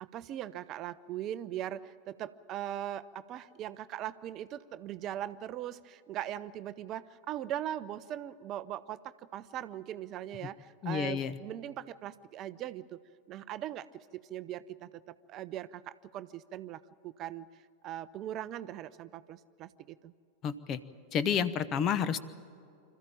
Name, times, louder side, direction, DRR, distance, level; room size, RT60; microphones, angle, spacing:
voice 1, 0.0-13.0 13.3-17.5 17.8-20.1, right 12 dB, 35° right, 15 dB, 0.5 m, -40 dB
voice 2, 10.8-11.3 20.4-20.8 21.1-22.2, left 7 dB, 30° left, 15 dB, 0.9 m, -30 dB
26.0 x 14.0 x 8.9 m, 2.5 s
figure-of-eight pair, 90°, 0 cm